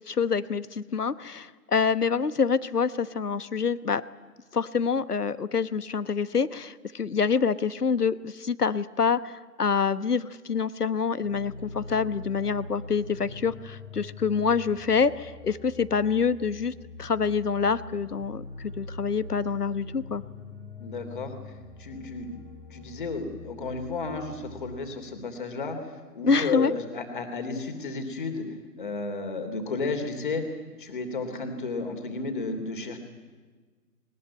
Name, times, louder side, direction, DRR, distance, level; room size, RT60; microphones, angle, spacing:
voice 1, 0.1-4.0 4.5-20.2 26.2-26.7, left 6 dB, 70° left, 15 dB, 1.2 m, -26 dB
sound 1, 11.2-24.9, left 2 dB, ahead, 2.2 m, -43 dB
voice 2, 20.8-21.3 21.8-22.3 22.7-28.5 28.8-30.4 30.8-33.0, left 3 dB, 30° left, 5 dB, 3.0 m, -32 dB
21.5 x 20.0 x 9.6 m, 1.4 s
figure-of-eight pair, 160°, 47 cm